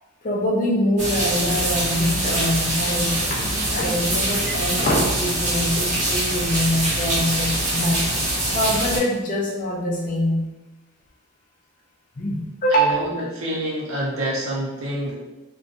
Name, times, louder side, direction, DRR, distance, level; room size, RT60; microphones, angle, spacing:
voice 1, 0.2-3.4 3.7-8.1 8.5-10.5 12.2-13.0, equal, 40° left, -2 dB, 0.4 m, -24 dB
sound 1, 1.0-9.0, right 1 dB, 35° right, 0.8 m, -24 dB
voice 2, 12.7-15.2, equal, 85° right, -5 dB, 0.6 m, -27 dB
2.7 x 2.2 x 2.5 m, 1.1 s
head